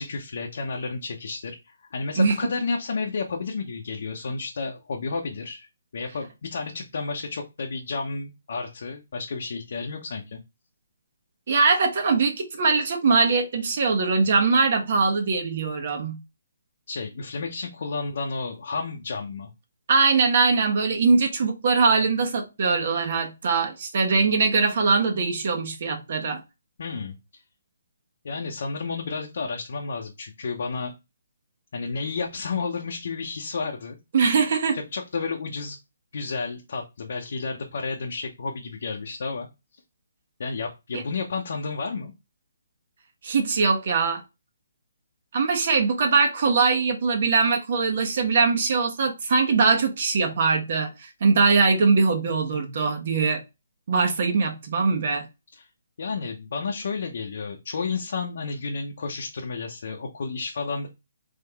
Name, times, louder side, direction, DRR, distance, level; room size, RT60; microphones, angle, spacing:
voice 1, 0.0-1.6 1.9-5.7 5.9-10.4 16.9-19.5 26.8-27.2 28.2-30.9 31.7-34.0 34.7-35.8 36.1-39.5 40.4-42.1 55.6-55.7 56.0-60.9, left 4 dB, 60° left, 0.9 m, -31 dB
voice 2, 11.5-16.2 19.9-26.4 34.1-34.8 40.9-41.0 43.2-44.2 45.3-53.4 53.9-55.3, right 4 dB, 50° right, 1.1 m, -22 dB
3.7 x 3.6 x 3.4 m
hypercardioid pair, 165°, 0 cm